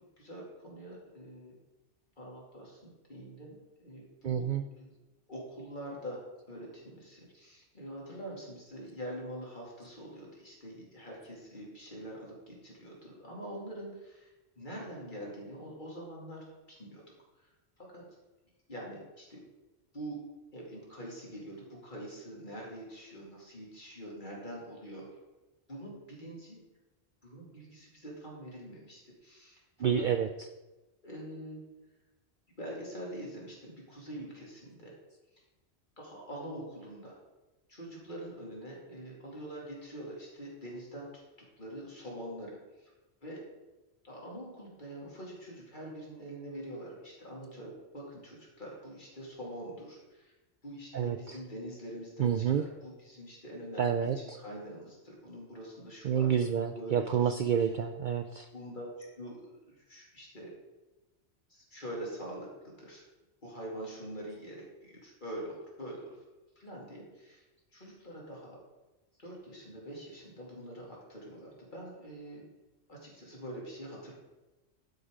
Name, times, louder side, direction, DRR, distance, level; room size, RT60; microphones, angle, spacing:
voice 1, 0.2-1.6 2.2-4.5 4.8-4.9 5.3-6.2 6.5-17.0 17.8-18.0 18.7-19.4 19.9-20.2 20.5-25.1 25.7-26.6 27.2-30.1 31.0-31.6 32.6-34.9 36.0-37.2 37.7-41.2 41.6-42.9 43.2-43.4 44.0-50.3 50.6-54.0 54.4-56.3 56.6-57.3 57.6-57.7 58.5-59.4 59.7-60.5 61.5-62.5 62.8-63.0 63.4-66.1 66.6-67.4 67.7-68.6 69.2-72.4 72.9-74.1, right 1 dB, 45° left, -3 dB, 2.6 m, -44 dB
voice 2, 4.2-4.6 29.8-30.3 50.9-51.4 52.2-52.6 53.8-54.4 56.0-58.5, right 8 dB, 60° right, 7 dB, 0.5 m, -29 dB
11.5 x 5.4 x 5.0 m, 1.1 s
omnidirectional pair, 1.2 m